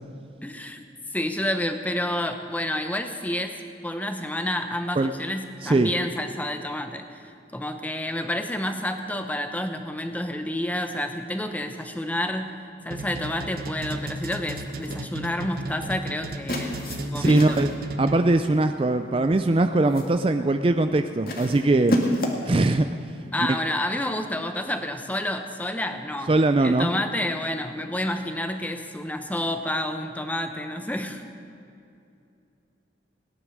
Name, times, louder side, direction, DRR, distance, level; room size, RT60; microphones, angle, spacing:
voice 1, 0.4-3.5 3.8-12.5 12.8-16.8 17.0-17.7 23.3-26.3 26.6-31.2, left 1 dB, 10° left, 7 dB, 0.8 m, -29 dB
sound 1, 12.9-18.4, right 2 dB, 55° right, 0.9 m, -34 dB
sound 2, 14.7-15.1 16.5-17.8 18.9-19.2 19.6-20.2 21.3-22.6, left 1 dB, 55° left, 1.9 m, -29 dB
voice 2, 17.2-17.7 18.0-22.0 22.5-22.9 26.3-26.9, right 2 dB, 30° right, 8 dB, 0.4 m, -21 dB
17.5 x 11.0 x 6.4 m, 2.6 s
head